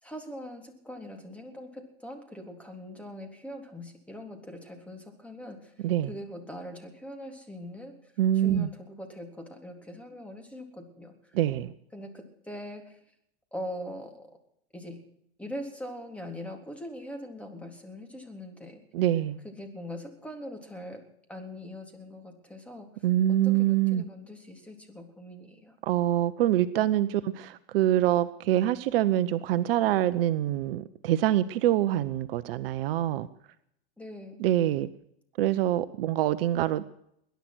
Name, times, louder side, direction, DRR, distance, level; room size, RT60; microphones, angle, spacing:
voice 1, 0.0-8.1 8.4-11.4 11.9-13.0 13.5-14.4 14.7-15.0 15.4-18.8 19.4-21.0 21.3-22.9 23.3-25.7 34.0-34.4, left 1 dB, 5° left, 3 dB, 3.6 m, -42 dB
voice 2, 8.2-8.7 11.3-11.7 18.9-19.4 23.0-24.0 25.8-33.3 34.4-34.9 35.4-36.9, right 12 dB, 60° right, 13 dB, 0.9 m, -25 dB
21.5 x 10.5 x 6.2 m, 0.73 s
hypercardioid pair, 110°, 32 cm